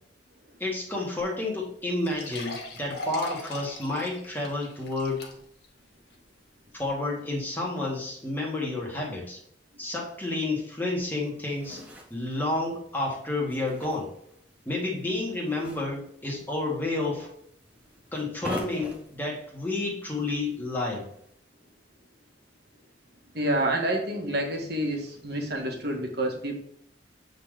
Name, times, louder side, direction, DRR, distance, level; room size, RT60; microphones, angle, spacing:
voice 1, 0.6-5.3 6.7-9.4 9.8-11.8 12.1-14.1 14.7-17.3 18.1-21.0, left 2 dB, 10° left, -2 dB, 1.9 m, -30 dB
sound 1, 1.2-1.3 1.6-1.7 2.0-5.7 6.1-6.2 6.8-6.9, left 1 dB, 60° left, 1.8 m, -40 dB
sound 2, 11.0-21.3, equal, 10° right, 1.4 m, -45 dB
voice 2, 23.3-26.6, right 1 dB, 60° right, 1 dB, 1.7 m, -28 dB
8.2 x 4.1 x 5.0 m, 0.69 s
head